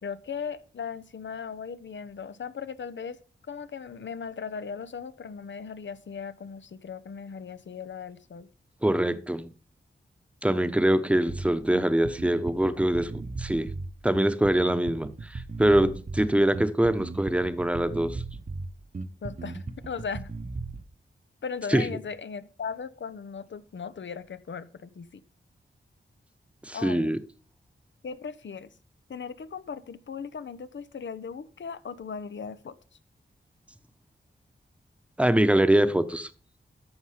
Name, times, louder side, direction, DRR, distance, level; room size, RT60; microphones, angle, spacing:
voice 1, 0.0-3.2 3.5-8.5 19.2-20.3 21.4-25.1 26.7-27.2 28.0-28.7 29.1-32.7, left 6 dB, 65° left, 0.8 m, -37 dB
voice 2, 8.8-9.5 10.4-13.7 14.0-18.2 21.7-21.9 26.6-27.2 35.2-36.3, right 1 dB, 5° right, 1.0 m, -24 dB
Bass guitar, 11.3-20.9, right 3 dB, 35° right, 1.0 m, -37 dB
13.0 x 5.5 x 5.0 m
cardioid pair, 45°, 21 cm